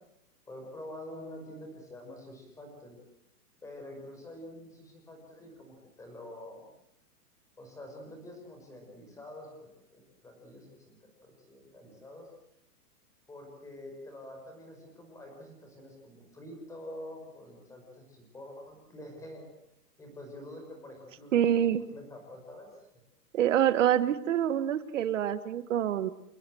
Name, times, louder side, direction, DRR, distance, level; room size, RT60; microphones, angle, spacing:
voice 1, 0.5-3.0 3.6-6.7 7.6-11.0 11.2-12.3 13.3-19.5 20.0-21.6 21.9-22.9, left 1 dB, 5° left, 3 dB, 5.4 m, -47 dB
voice 2, 21.3-21.8 23.3-26.1, right 10 dB, 50° right, 14 dB, 1.7 m, -26 dB
29.5 x 19.0 x 7.9 m, 0.80 s
hypercardioid pair, 165°, 48 cm